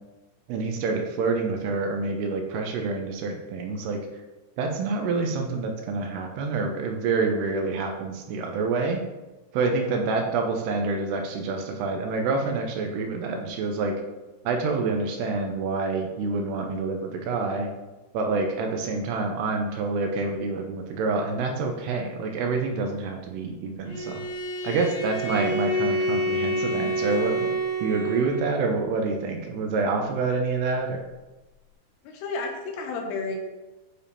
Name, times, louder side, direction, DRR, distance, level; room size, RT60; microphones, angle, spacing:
voice 1, 0.5-4.0 4.6-9.0 9.5-14.0 14.4-17.7 18.1-24.2 24.6-31.0, right 4 dB, 85° right, 3 dB, 2.8 m, -27 dB
Bowed string instrument, 23.9-28.6, right 1 dB, 55° left, 2.4 m, -28 dB
voice 2, 32.0-33.4, left 3 dB, 85° left, 2 dB, 3.0 m, -32 dB
8.6 x 3.5 x 4.2 m, 1.1 s
omnidirectional pair, 4.7 m